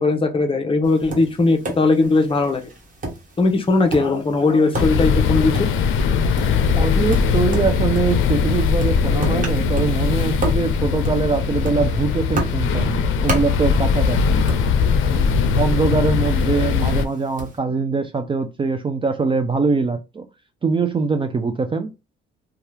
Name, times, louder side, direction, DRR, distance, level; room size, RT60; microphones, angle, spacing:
voice 1, 0.0-2.6 3.4-5.5, left 3 dB, 25° left, 0.8 m, -18 dB
Tap, 0.8-17.6, right 2 dB, 40° right, 1.2 m, -33 dB
sound 1, 4.7-17.0, left 5 dB, 80° left, 0.5 m, -20 dB
voice 2, 6.7-14.4 15.1-20.3 20.6-21.9, right 4 dB, 25° right, 0.4 m, -23 dB
2.7 x 2.3 x 3.3 m
cardioid pair, 90°, 20 cm